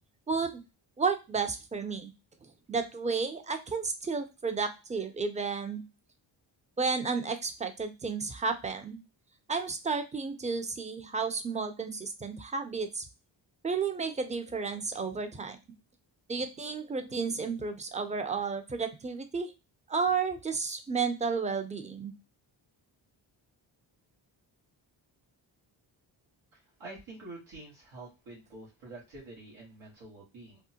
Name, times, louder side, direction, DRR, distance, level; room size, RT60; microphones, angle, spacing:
voice 1, 0.3-0.6 1.0-2.1 2.4-5.8 6.8-9.0 9.5-13.1 13.6-15.6 16.3-19.5 19.9-22.1, right 5 dB, 15° right, 7 dB, 0.5 m, -32 dB
voice 2, 26.5-30.6, right 2 dB, 80° right, -5 dB, 1.4 m, -47 dB
3.5 x 2.1 x 2.8 m, 0.27 s
cardioid pair, 65°, 47 cm